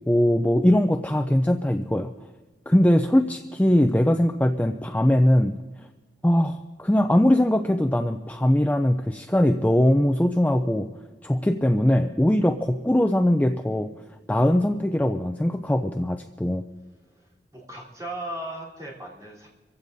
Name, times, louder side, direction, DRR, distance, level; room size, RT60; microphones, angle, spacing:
voice 1, 0.1-2.1 2.7-5.6 6.2-10.9 11.2-13.9 14.3-16.6, left 1 dB, 10° left, 6 dB, 0.4 m, -21 dB
voice 2, 17.1-19.5, right 1 dB, 20° right, -6 dB, 3.5 m, -37 dB
26.0 x 15.5 x 2.7 m, 1.3 s
head